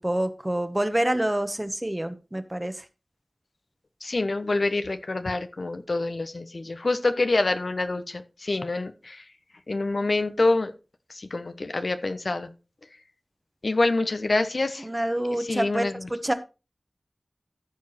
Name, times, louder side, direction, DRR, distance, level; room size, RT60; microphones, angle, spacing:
voice 1, 0.0-2.9 14.8-15.8 16.2-16.3, right 1 dB, 20° right, 9 dB, 1.2 m, -27 dB
voice 2, 4.0-9.2 9.7-10.7 11.1-12.5 13.6-14.9 15.3-16.1, left 2 dB, 70° left, 9 dB, 1.0 m, -26 dB
14.5 x 4.8 x 4.2 m, 0.31 s
wide cardioid pair, 45°, 0 cm